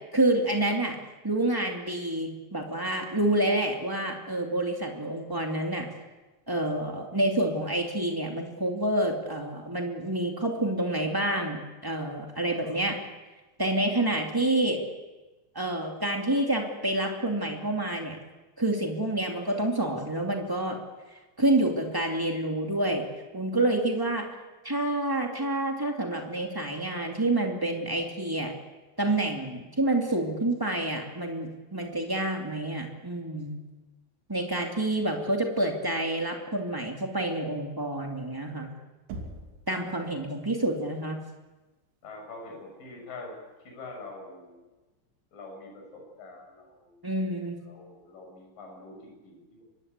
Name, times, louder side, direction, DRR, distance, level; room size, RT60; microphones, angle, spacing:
voice 1, 0.1-0.9 1.2-5.9 6.5-13.0 13.6-14.8 15.5-18.2 18.6-20.8 21.4-23.0 23.3-24.2 24.6-28.5 29.0-33.6 34.3-38.7 39.7-41.2 47.0-47.6, right 1 dB, 30° right, 1 dB, 0.3 m, -28 dB
Knock, 39.1-39.7, right 2 dB, 75° right, 5.2 m, -39 dB
voice 2, 42.0-43.4 43.6-44.6 45.3-47.0 47.6-49.6, left 2 dB, 45° left, 1 dB, 8.2 m, -45 dB
25.5 x 22.0 x 8.1 m, 1.2 s
omnidirectional pair, 5.3 m